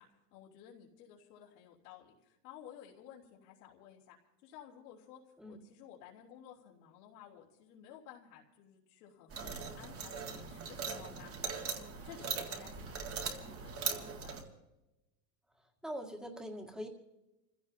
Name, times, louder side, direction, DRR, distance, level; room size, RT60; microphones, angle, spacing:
voice 1, 0.0-4.2 4.4-11.3 11.6-14.3, left 9 dB, 75° left, -4 dB, 3.4 m, -55 dB
sound 1, 9.3-14.4, right 5 dB, 30° right, 2.1 m, -40 dB
voice 2, 15.8-16.9, equal, ahead, 2 dB, 2.0 m, -42 dB
29.0 x 16.0 x 2.8 m, 0.98 s
supercardioid pair, 135°, 48 cm